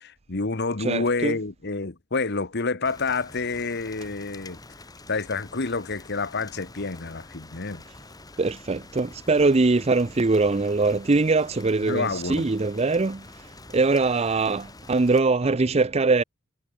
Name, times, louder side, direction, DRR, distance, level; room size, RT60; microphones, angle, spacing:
voice 1, 0.0-4.6 5.1-7.8 11.8-12.4, left 3 dB, 55° left, 1.3 m, -28 dB
voice 2, 0.8-1.3 8.4-13.2 13.7-16.2, right 3 dB, 30° right, 0.6 m, -22 dB
Rain, 2.8-15.2, left 2 dB, 20° left, 1.6 m, -47 dB
head